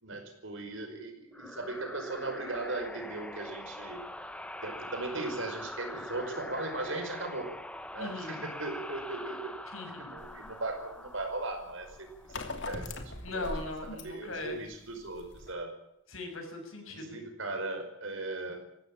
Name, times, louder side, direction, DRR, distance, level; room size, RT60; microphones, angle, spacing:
voice 1, 0.0-4.0 4.6-7.5 7.9-9.5 10.0-12.1 12.5-12.9 13.3-13.4 14.0-15.7 16.9-18.6, right 2 dB, 70° right, 6 dB, 5.3 m, -38 dB
sound 1, 1.3-12.7, left 1 dB, 5° left, 1.1 m, -43 dB
voice 2, 8.0-8.4 9.7-10.1 13.2-14.6 16.1-17.2, left 2 dB, 80° left, 4 dB, 6.8 m, -39 dB
sound 2, 10.2-15.5, left 2 dB, 60° left, 2.7 m, -43 dB
20.0 x 16.0 x 8.7 m, 0.80 s
head